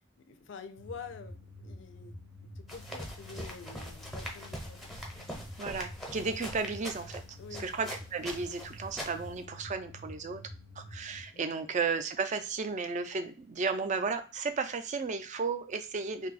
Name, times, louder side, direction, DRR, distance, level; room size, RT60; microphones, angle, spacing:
voice 1, 0.2-5.3 7.4-7.7 11.3-11.5, left 5 dB, 60° left, 9 dB, 0.4 m, -48 dB
sound 1, 0.8-11.2, left 1 dB, 85° right, 0.9 m, -48 dB
sound 2, 2.7-9.4, equal, ahead, 0.7 m, -43 dB
voice 2, 5.6-10.4 10.8-16.3, right 4 dB, 35° right, 9 dB, 0.3 m, -34 dB
2.7 x 2.2 x 4.0 m, 0.36 s
head